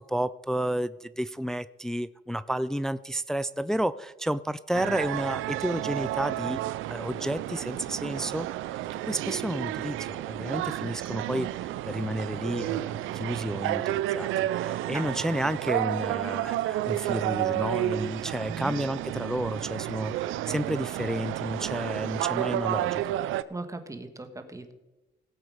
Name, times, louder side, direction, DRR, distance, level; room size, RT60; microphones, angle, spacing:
voice 1, 0.0-6.6 6.9-20.1 20.5-23.2, equal, 5° left, 15 dB, 0.4 m, -31 dB
sound 1, 4.7-23.4, right 14 dB, 85° right, 0.5 m, -31 dB
voice 2, 23.5-24.7, right 2 dB, 15° right, 7 dB, 1.5 m, -38 dB
17.0 x 8.0 x 5.0 m, 1.1 s
cardioid pair, 90°, 20 cm